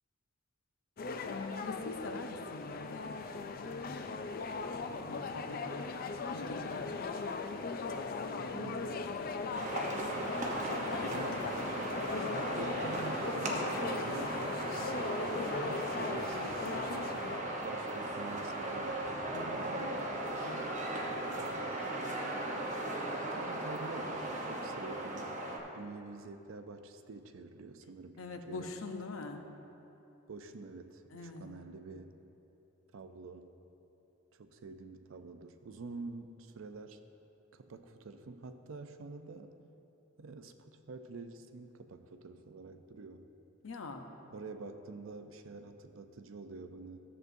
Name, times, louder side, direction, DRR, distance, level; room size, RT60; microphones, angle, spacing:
sound 1, 1.0-17.4, left 4 dB, 45° left, 0.4 m, -38 dB
voice 1, 1.3-3.1 3.6-4.1 4.7-6.0 6.3-7.1 7.9-8.7 19.3-20.7 28.2-29.4 31.1-31.6 43.6-44.1, left 2 dB, 90° left, 5 dB, 0.7 m, -45 dB
voice 2, 8.5-9.1 11.1-11.5 12.3-14.5 14.8-15.3 15.6-17.1 17.6-19.0 21.3-21.8 23.2-25.3 25.7-28.2 28.5-28.7 30.3-32.1 32.9-33.6 34.3-37.0 37.5-39.6 40.2-43.3 44.3-47.0, right 3 dB, 80° right, 8 dB, 0.5 m, -47 dB
sound 2, 9.5-25.6, right 1 dB, 40° right, 0.9 m, -37 dB
13.5 x 7.6 x 2.7 m, 3.0 s
head